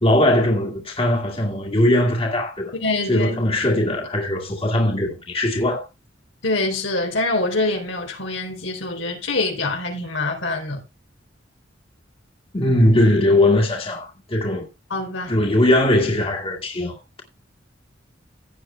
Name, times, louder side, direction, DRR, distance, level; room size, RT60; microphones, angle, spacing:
voice 1, 0.0-2.7 3.1-5.8 12.5-14.7 15.3-17.2, left 1 dB, 30° left, 2.1 m, -20 dB
voice 2, 2.8-3.3 3.7-3.8 6.4-10.8 14.9-15.3, left 2 dB, 90° left, 3.8 m, -25 dB
16.0 x 8.6 x 2.3 m
head